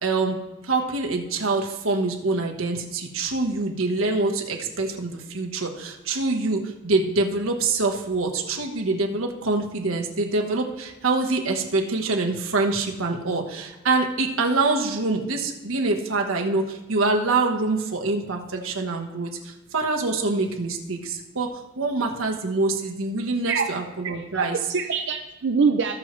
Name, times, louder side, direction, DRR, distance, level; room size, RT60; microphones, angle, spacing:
voice 1, 0.0-24.6, right 3 dB, 85° right, 1 dB, 1.2 m, -25 dB
voice 2, 24.1-26.0, right 5 dB, 60° right, 3 dB, 0.5 m, -24 dB
18.0 x 6.4 x 3.2 m, 1.0 s
head